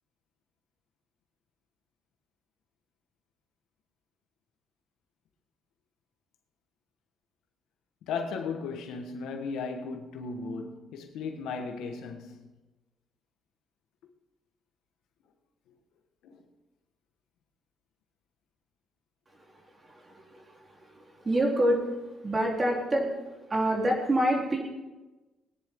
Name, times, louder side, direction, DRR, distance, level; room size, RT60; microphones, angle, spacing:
voice 1, 8.0-12.4 16.2-16.4, left 4 dB, 85° left, 1.4 m, -36 dB
voice 2, 19.3-23.1 23.5-24.6, right 1 dB, 30° right, 3.7 m, -28 dB
21.0 x 10.0 x 3.8 m
cardioid pair, 90°, 0 cm